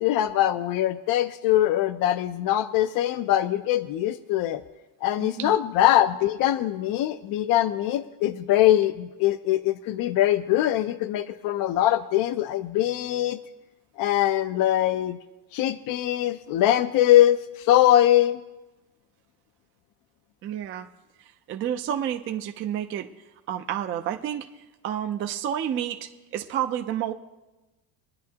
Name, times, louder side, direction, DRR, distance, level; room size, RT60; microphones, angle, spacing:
voice 1, 0.0-4.6 5.0-13.4 14.0-15.2 15.5-18.4, left 13 dB, 50° left, 11 dB, 0.5 m, -22 dB
voice 2, 5.2-5.5 20.4-20.9 21.2-23.1 23.5-24.5 24.8-27.1, right 10 dB, 30° right, 5 dB, 0.4 m, -30 dB
24.0 x 10.5 x 2.8 m, 1.1 s
cardioid pair, 160°, 45 cm